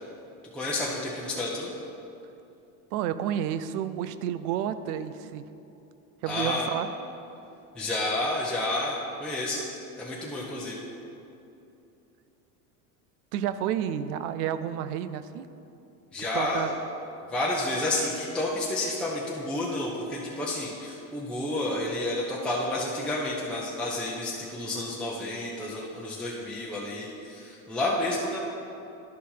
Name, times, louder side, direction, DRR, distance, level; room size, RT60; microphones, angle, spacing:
voice 1, 0.5-1.7 6.3-6.7 7.7-9.6 10.0-10.8 16.1-16.7 17.3-28.4, left 2 dB, ahead, -6 dB, 1.0 m, -30 dB
voice 2, 2.9-5.5 6.2-6.9 13.3-15.5 16.3-16.7, right 10 dB, 80° right, 13 dB, 0.6 m, -30 dB
11.5 x 4.2 x 5.6 m, 2.8 s
supercardioid pair, 105°, 44 cm